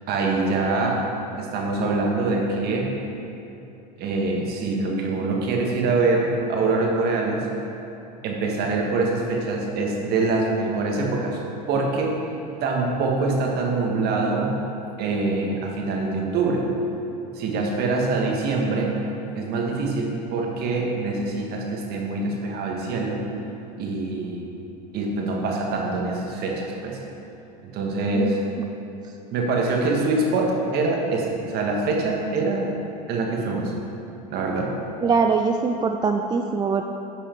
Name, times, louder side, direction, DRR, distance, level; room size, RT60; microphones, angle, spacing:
voice 1, 0.1-1.0 1.4-2.9 4.0-7.5 8.2-11.4 11.7-12.2 12.6-14.6 15.0-16.7 17.3-19.0 19.3-23.2 23.8-24.4 24.9-27.0 27.7-28.4 29.3-32.7 33.1-33.7 34.3-34.7, right 3 dB, 50° right, 0 dB, 1.7 m, -24 dB
voice 2, 28.1-29.2 35.0-36.8, right 5 dB, 20° right, 4 dB, 0.4 m, -24 dB
10.5 x 5.5 x 4.5 m, 2.8 s
hypercardioid pair, 95°, 21 cm